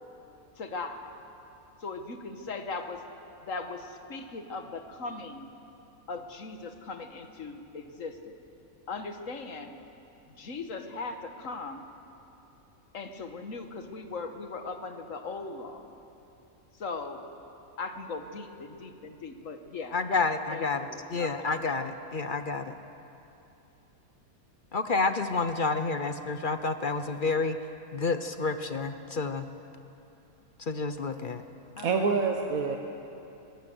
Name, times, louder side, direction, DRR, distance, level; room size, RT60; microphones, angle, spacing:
voice 1, 0.6-1.1 1.8-3.0 3.4-5.5 6.1-8.4 8.9-9.7 10.3-11.8 12.9-15.9 16.7-17.2 17.8-21.5 21.8-21.9 31.8-32.1, left 3 dB, 65° left, 6 dB, 1.7 m, -39 dB
voice 2, 19.9-20.8 21.1-22.7 24.7-27.6 27.9-29.5 30.7-31.4, left 4 dB, 45° left, 9 dB, 0.7 m, -29 dB
voice 3, 31.8-32.8, right 5 dB, 70° right, 3 dB, 1.5 m, -26 dB
23.0 x 16.0 x 7.8 m, 2.9 s
omnidirectional pair, 1.5 m